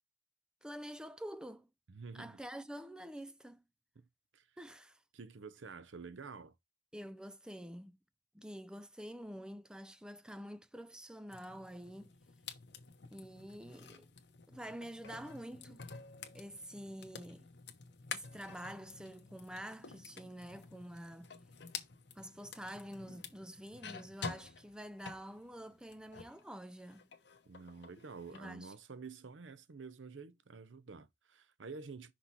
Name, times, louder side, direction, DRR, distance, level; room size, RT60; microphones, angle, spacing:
voice 1, 0.6-1.7 2.1-3.6 4.6-5.0 6.9-8.0 8.3-12.1 13.1-14.1 14.5-15.8 16.3-17.5 18.1-21.4 22.2-27.0 28.3-28.7, equal, 5° right, 0.3 m, -47 dB
voice 2, 1.9-2.4 4.0-4.1 4.3-4.5 5.1-6.5 27.5-32.1, right 4 dB, 75° right, 0.6 m, -49 dB
sound 1, 11.3-26.4 26.8-28.5, left 5 dB, 65° left, 1.0 m, -50 dB
6.0 x 3.1 x 5.6 m
head